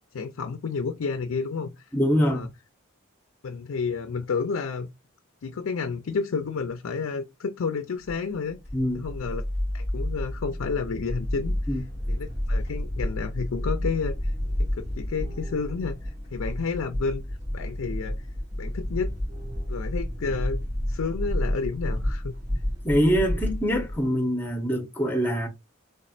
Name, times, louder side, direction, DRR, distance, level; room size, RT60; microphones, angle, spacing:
voice 1, 0.1-1.9 2.1-2.5 3.4-4.9 5.4-8.6 8.9-9.4 9.7-17.2 17.5-18.3 18.6-19.2 19.7-20.6 20.9-22.3, left 5 dB, 90° left, 0.5 m, -31 dB
voice 2, 1.9-2.5 8.7-9.1 11.7-11.8 22.8-25.5, equal, 10° left, 0.9 m, -24 dB
sound 1, 8.1-24.1, left 1 dB, 55° right, 2.3 m, -30 dB
4.2 x 3.5 x 2.4 m
head